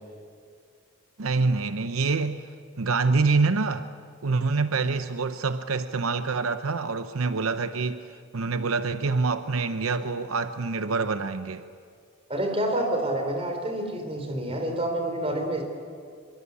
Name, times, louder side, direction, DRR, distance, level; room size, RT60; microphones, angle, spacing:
voice 1, 1.2-2.4 2.8-3.9 4.2-11.6, right 4 dB, 80° right, 10 dB, 0.8 m, -26 dB
voice 2, 12.3-15.6, right 1 dB, 25° right, 4 dB, 4.0 m, -28 dB
24.0 x 24.0 x 8.4 m, 2.3 s
head